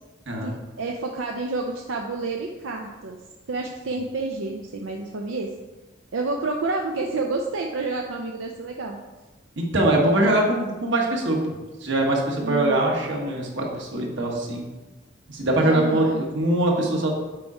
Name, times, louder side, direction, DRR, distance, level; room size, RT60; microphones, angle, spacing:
voice 1, 0.8-3.2 3.5-5.5 6.1-9.0 12.4-12.9 15.6-16.2, right 3 dB, 90° right, 1 dB, 0.6 m, -29 dB
voice 2, 9.6-11.4 11.8-14.6 15.3-16.0 16.3-17.2, right 1 dB, 65° right, 0 dB, 1.5 m, -22 dB
7.5 x 4.9 x 4.2 m, 1.1 s
head